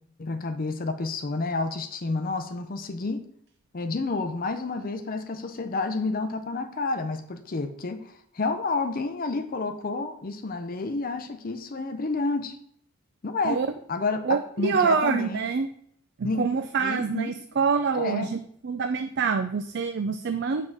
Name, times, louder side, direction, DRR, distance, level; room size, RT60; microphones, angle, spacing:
voice 1, 0.2-3.2 3.7-12.6 13.2-15.4 16.2-16.4 16.8-17.3 17.9-18.3, left 3 dB, 40° left, 8 dB, 0.5 m, -30 dB
voice 2, 14.3-15.7 16.2-18.4 18.6-20.7, right 5 dB, 50° right, 8 dB, 0.4 m, -26 dB
7.6 x 3.7 x 6.0 m, 0.66 s
head